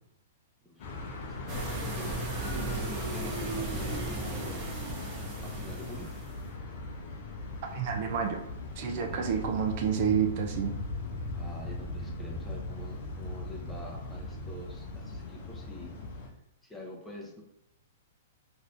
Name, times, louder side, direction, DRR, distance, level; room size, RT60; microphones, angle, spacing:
voice 1, 0.6-4.9 5.4-6.1 8.8-9.5 11.3-16.0 16.6-17.4, left 1 dB, 5° left, -2 dB, 0.7 m, -46 dB
sound 1, 0.8-16.3, left 2 dB, 50° left, 0.6 m, -39 dB
sound 2, 1.5-6.4, right 2 dB, 25° right, 0.8 m, -35 dB
voice 2, 7.6-8.4 8.8-10.7, right 7 dB, 50° right, 3 dB, 0.4 m, -29 dB
2.6 x 2.4 x 3.3 m, 0.78 s
hypercardioid pair, 125°, 0 cm